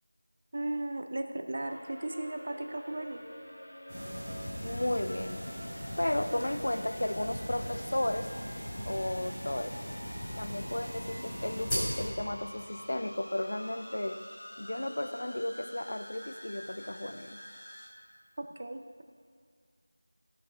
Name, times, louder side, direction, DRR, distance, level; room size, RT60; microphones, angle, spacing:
voice 1, 0.5-3.2 18.4-19.0, right 1 dB, 35° right, 6 dB, 0.4 m, -36 dB
sound 1, 1.6-17.9, equal, 25° left, 1.0 m, -47 dB
sound 2, 3.9-12.1, equal, 5° left, 2.2 m, -38 dB
voice 2, 4.6-5.5 6.0-8.3 8.9-9.8 10.4-14.2 14.6-17.4, left 1 dB, 50° left, 10 dB, 0.4 m, -34 dB
10.5 x 5.3 x 4.9 m, 2.1 s
figure-of-eight pair, 175°, 0 cm